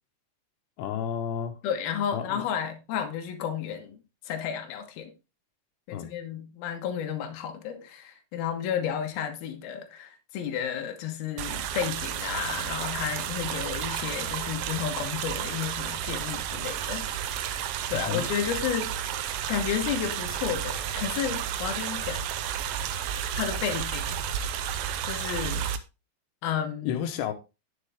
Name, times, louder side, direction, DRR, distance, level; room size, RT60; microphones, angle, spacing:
voice 1, 0.8-1.5 2.1-2.5 5.9-6.1 18.1-18.3 26.8-27.3, left 8 dB, 90° left, 3.2 m, -31 dB
voice 2, 1.6-5.1 5.9-17.1 17.9-19.2 19.5-22.2 23.3-24.2 25.0-25.7 26.4-27.0, left 8 dB, 70° left, 3.1 m, -32 dB
sound 1, 11.4-25.8, right 10 dB, 75° right, 2.2 m, -32 dB
9.9 x 7.6 x 3.5 m
omnidirectional pair, 4.7 m